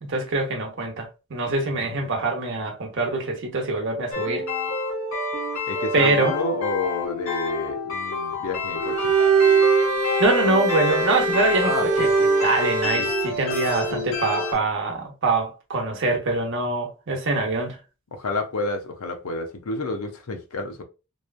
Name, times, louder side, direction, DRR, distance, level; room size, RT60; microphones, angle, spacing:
voice 1, 0.0-4.4 5.9-6.4 9.8-9.9 10.2-12.1 12.4-17.8, right 3 dB, 60° right, 0.8 m, -24 dB
voice 2, 1.7-2.1 5.7-9.1 11.6-12.1 12.9-13.1 18.1-20.8, left 2 dB, 80° left, 0.6 m, -30 dB
sound 1, 4.1-14.5, left 3 dB, 65° left, 1.0 m, -28 dB
Bowed string instrument, 8.8-13.3, right 5 dB, 80° right, 0.5 m, -22 dB
3.0 x 2.2 x 2.4 m
head